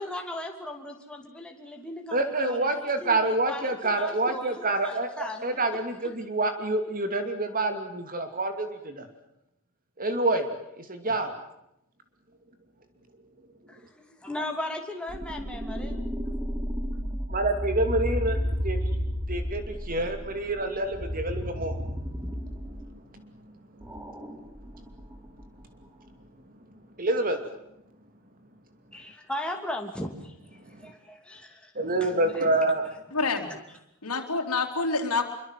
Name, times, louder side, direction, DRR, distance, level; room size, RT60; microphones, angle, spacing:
voice 1, 0.0-5.7 13.7-15.9 28.9-30.4 30.8-31.7 32.0-32.5, left 1 dB, 5° left, 2 dB, 2.8 m, -37 dB
voice 2, 2.1-9.1 10.0-10.5 10.8-11.3 17.3-18.4 18.6-18.8 19.3-21.8 27.0-27.4 30.8-30.9 31.7-32.8, right 2 dB, 40° right, 7 dB, 2.7 m, -27 dB
sound 1, 15.1-22.9 23.8-25.6, equal, 10° right, 3.0 m, -32 dB
voice 3, 33.1-33.5 34.0-35.2, left 3 dB, 90° left, 3 dB, 3.7 m, -27 dB
26.5 x 24.0 x 7.6 m, 0.81 s
head